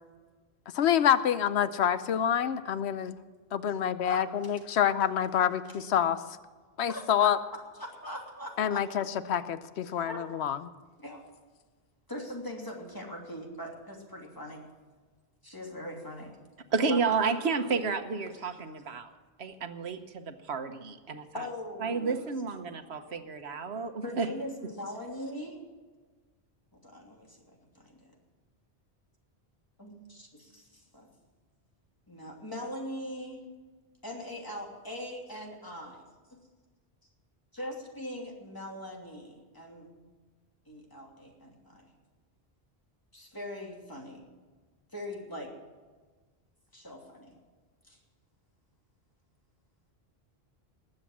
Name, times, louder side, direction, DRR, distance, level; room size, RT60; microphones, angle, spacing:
voice 1, 0.7-3.1 3.5-6.2 6.8-7.4 8.6-10.6, left 9 dB, 85° left, 13 dB, 1.0 m, -27 dB
voice 2, 4.1-4.5 6.9-7.1 7.7-8.8 10.0-10.2 11.0-11.3 12.1-14.6 15.4-16.4 16.9-17.2 18.3-18.5 21.3-22.2 24.0-25.6 26.7-28.0 29.8-31.1 32.1-33.4 34.0-36.0 37.5-39.9 40.7-41.9 43.1-44.2 44.9-45.5 46.7-47.3 47.8-48.0, left 1 dB, 20° left, -1 dB, 2.9 m, -41 dB
voice 3, 16.7-19.1 19.4-21.3 21.8-24.3, right 5 dB, 80° right, 8 dB, 1.3 m, -31 dB
20.0 x 7.9 x 7.3 m, 1.4 s
omnidirectional pair, 1.1 m